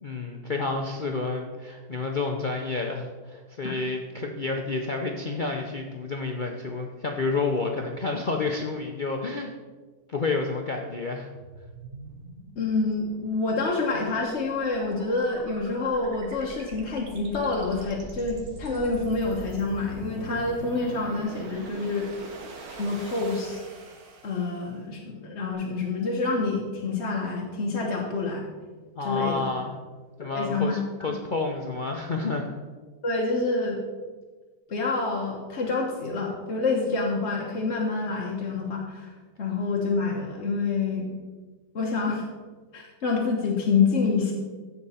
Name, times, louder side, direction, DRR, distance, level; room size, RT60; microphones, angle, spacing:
voice 1, 0.0-9.5 10.1-11.3 29.0-29.8 30.2-32.4, left 3 dB, 65° left, 1 dB, 0.4 m, -30 dB
sound 1, 11.4-24.8, right 2 dB, 60° right, 1.6 m, -43 dB
voice 2, 12.6-22.1 22.8-23.6 24.2-28.5 29.0-29.5 30.2-31.1 33.0-33.8 34.7-39.1 39.4-41.1 41.7-42.2 42.7-44.3, left 3 dB, 45° left, -2 dB, 1.3 m, -27 dB
15.0 x 5.9 x 4.3 m, 1.4 s
omnidirectional pair, 1.9 m